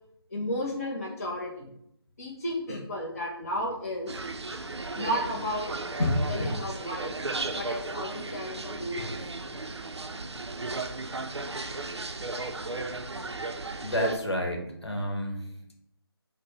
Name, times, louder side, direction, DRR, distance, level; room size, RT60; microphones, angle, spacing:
voice 1, 0.3-1.8 2.2-4.1 4.5-4.6 5.0-5.7 6.0-7.1 7.6-9.1, left 1 dB, 35° left, -2 dB, 0.7 m, -32 dB
sound 1, 4.1-14.2, right 3 dB, 85° right, 0.5 m, -35 dB
voice 2, 13.8-15.5, equal, 75° left, 2 dB, 1.1 m, -30 dB
5.9 x 2.1 x 3.3 m, 0.75 s
figure-of-eight pair, 160°, 14 cm